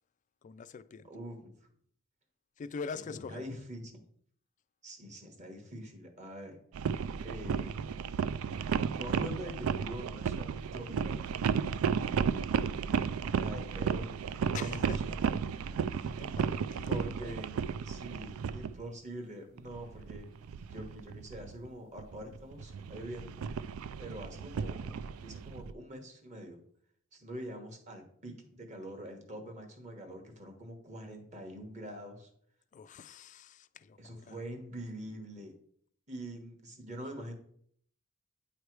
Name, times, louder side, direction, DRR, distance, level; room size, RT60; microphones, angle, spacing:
voice 1, 0.4-1.1 2.6-3.5 14.5-17.4 32.7-34.4, left 5 dB, 35° left, 0.3 m, -45 dB
voice 2, 1.0-1.5 2.9-4.0 4.8-6.6 7.2-7.7 9.0-11.3 13.3-14.1 14.4-15.2 16.9-17.6 17.8-20.3 20.7-23.3 24.0-26.6 27.1-32.3 34.0-35.5 36.1-37.3, equal, 35° right, 1.3 m, -44 dB
sound 1, 6.7-18.8 19.6-21.7 22.0-25.7, right 6 dB, 80° right, 0.3 m, -34 dB
9.2 x 3.3 x 4.6 m
head